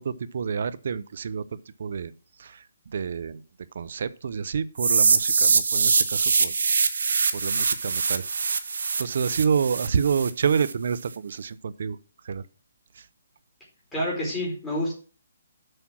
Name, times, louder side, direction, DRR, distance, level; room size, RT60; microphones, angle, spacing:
voice 1, 0.0-1.4 1.8-2.1 2.4-3.4 3.7-6.5 7.3-8.2 9.0-12.0 12.2-12.5 12.9-13.1, right 6 dB, 55° right, 16 dB, 0.6 m, -28 dB
sound 1, 4.8-10.7, right 5 dB, 70° right, 1.2 m, -23 dB
voice 2, 13.9-14.9, left 1 dB, 10° left, -4 dB, 4.3 m, -28 dB
7.8 x 5.9 x 6.1 m, 0.37 s
hypercardioid pair, 165°, 0 cm